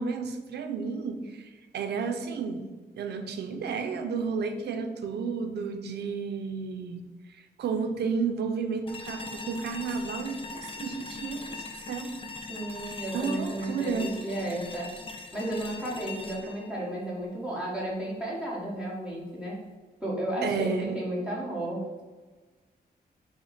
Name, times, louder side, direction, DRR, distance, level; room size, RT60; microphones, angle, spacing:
voice 1, 0.0-2.7 3.0-12.1 13.1-14.1 20.4-20.9, right 5 dB, 85° right, 7 dB, 0.5 m, -32 dB
sound 1, 8.9-17.9, left 3 dB, 35° left, 0.4 m, -41 dB
voice 2, 12.5-14.9 15.3-19.6 20.0-22.0, right 1 dB, 5° right, -6 dB, 1.1 m, -33 dB
5.7 x 2.1 x 4.0 m, 1.3 s
wide cardioid pair, 120°, 17 cm